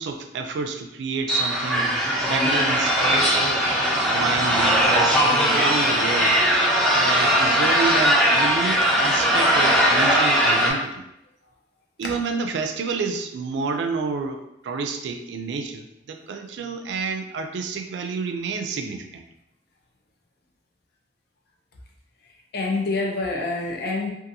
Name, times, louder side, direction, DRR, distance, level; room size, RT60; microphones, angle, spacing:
voice 1, 0.0-1.9 2.3-3.7 4.0-6.4 6.9-11.0 12.0-19.2, right 4 dB, 80° right, 5 dB, 0.3 m, -29 dB
sound 1, 1.3-10.7, equal, ahead, 0.5 m, -19 dB
voice 2, 22.5-24.1, left 3 dB, 65° left, 1 dB, 0.5 m, -26 dB
2.6 x 2.5 x 2.6 m, 0.83 s
head